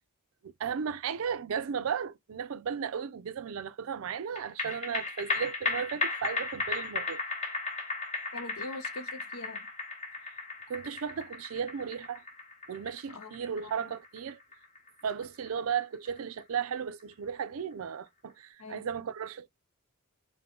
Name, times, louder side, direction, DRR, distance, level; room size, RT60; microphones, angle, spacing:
voice 1, 0.4-7.2 10.7-12.2 12.7-14.4 15.0-19.5, right 7 dB, 75° right, 0.4 m, -35 dB
sound 1, 4.4-17.0 17.4-17.5, left 3 dB, 35° left, 1.0 m, -36 dB
voice 2, 8.3-9.6 13.1-13.3 13.6-13.9 18.6-18.9, left 2 dB, 85° left, 0.8 m, -42 dB
5.2 x 2.1 x 2.8 m
head